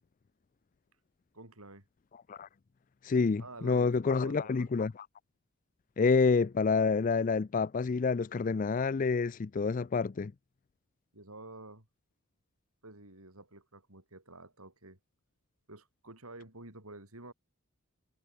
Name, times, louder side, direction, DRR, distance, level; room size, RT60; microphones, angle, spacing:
voice 1, 1.3-1.8 3.4-4.7 11.1-11.9 12.8-15.0 15.7-17.3, right 2 dB, 80° right, 6.9 m, -50 dB
voice 2, 3.0-4.9 6.0-10.3, left 4 dB, 35° left, 0.4 m, -28 dB
head